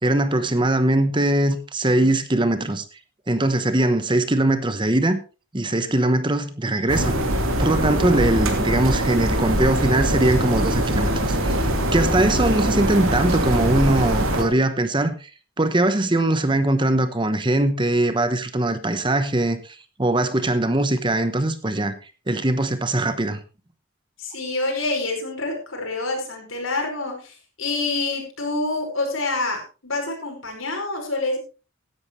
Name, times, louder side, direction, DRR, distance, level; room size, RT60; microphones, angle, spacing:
voice 1, 0.0-2.8 3.3-5.2 5.5-7.2 7.6-15.3 15.6-21.9 22.3-23.4, right 1 dB, 25° right, 1.0 m, -21 dB
sound 1, 6.9-14.4, right 1 dB, 85° right, 2.6 m, -22 dB
voice 2, 24.2-31.4, left 2 dB, 80° left, 5.3 m, -27 dB
16.0 x 11.0 x 3.2 m
head